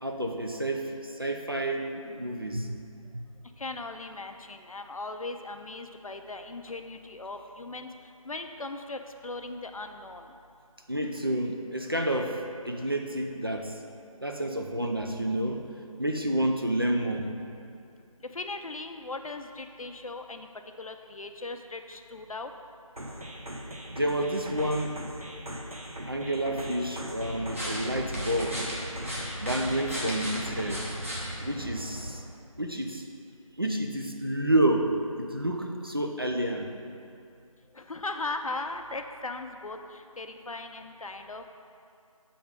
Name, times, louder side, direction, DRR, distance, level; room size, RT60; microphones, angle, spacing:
voice 1, 0.0-2.7 10.9-13.8 14.2-15.6 16.0-17.4 23.9-25.0 26.1-28.6 29.4-30.9 31.4-32.2 32.6-33.0 33.6-36.7, right 1 dB, 40° right, 2 dB, 0.4 m, -29 dB
voice 2, 3.6-7.9 8.2-10.3 18.3-20.5 20.8-22.5 37.7-41.5, left 2 dB, 70° left, 6 dB, 0.5 m, -38 dB
sound 1, 23.0-31.0, right 1 dB, 90° right, 1.1 m, -40 dB
sound 2, 27.2-32.1, equal, 20° right, 0.9 m, -36 dB
6.9 x 3.5 x 5.1 m, 2.5 s
figure-of-eight pair, 175°, 18 cm